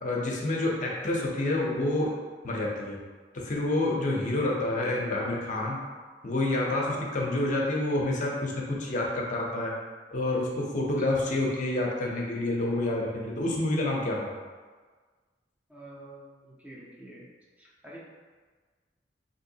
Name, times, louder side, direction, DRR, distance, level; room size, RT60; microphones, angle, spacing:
voice 1, 0.0-2.1 2.4-3.0 3.3-5.8 6.2-9.7 10.1-14.3, left 2 dB, 45° left, -2 dB, 0.6 m, -28 dB
voice 2, 15.7-17.3 17.6-18.0, right 1 dB, 10° right, -6 dB, 0.6 m, -47 dB
3.7 x 2.7 x 2.7 m, 1.4 s
head